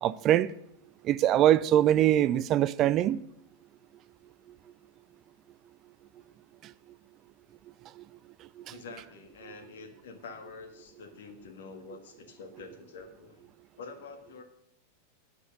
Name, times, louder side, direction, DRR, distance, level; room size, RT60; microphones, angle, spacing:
voice 1, 0.0-0.5 1.0-3.2, right 12 dB, 35° right, 0.3 m, -23 dB
voice 2, 8.7-13.5 13.8-14.4, left 4 dB, 60° left, 1.5 m, -46 dB
10.0 x 5.3 x 8.3 m
figure-of-eight pair, 90°, 0 cm